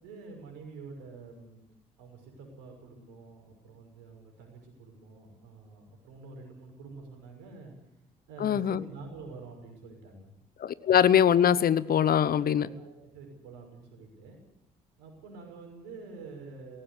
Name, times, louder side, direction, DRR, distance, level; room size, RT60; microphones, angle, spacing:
voice 1, 0.0-1.6 2.0-7.7 8.3-10.3 12.2-14.4 15.0-16.8, right 4 dB, 80° right, 3 dB, 6.1 m, -47 dB
voice 2, 8.4-8.8 10.6-12.7, left 9 dB, 55° left, 17 dB, 1.0 m, -23 dB
18.0 x 15.5 x 9.9 m, 0.83 s
hypercardioid pair, 45°, 19 cm